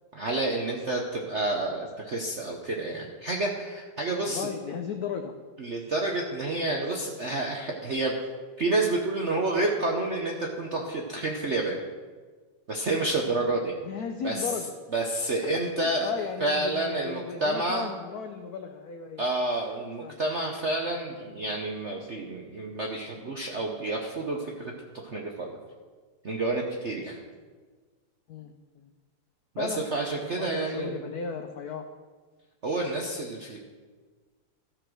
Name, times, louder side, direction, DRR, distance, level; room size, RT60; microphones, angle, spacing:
voice 1, 0.1-4.5 5.6-8.1 8.6-11.8 12.7-13.7 14.2-14.5 14.9-16.1 16.4-17.9 19.2-24.7 25.0-25.6 26.2-27.2 29.5-31.0 32.6-33.6, right 2 dB, 60° right, 0 dB, 0.7 m, -29 dB
voice 2, 4.2-5.3 13.8-14.7 15.4-19.2 20.0-20.2 28.3-28.9 29.6-29.8 30.3-31.8, left 6 dB, 80° left, 6 dB, 0.8 m, -36 dB
14.0 x 5.0 x 6.2 m, 1.4 s
omnidirectional pair, 2.4 m